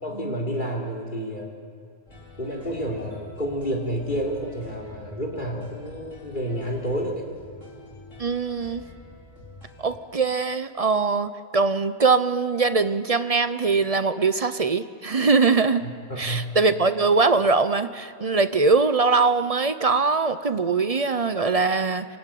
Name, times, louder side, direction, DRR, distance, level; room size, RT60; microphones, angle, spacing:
voice 1, 0.0-1.5 2.4-7.3 15.8-16.5, equal, 40° left, 0 dB, 3.6 m, -30 dB
sound 1, 2.1-10.0, left 2 dB, 90° left, 4.1 m, -46 dB
voice 2, 8.2-8.8 9.8-15.8 16.2-22.1, right 4 dB, 35° right, 11 dB, 0.7 m, -22 dB
26.0 x 16.0 x 9.2 m, 2.3 s
omnidirectional pair, 1.2 m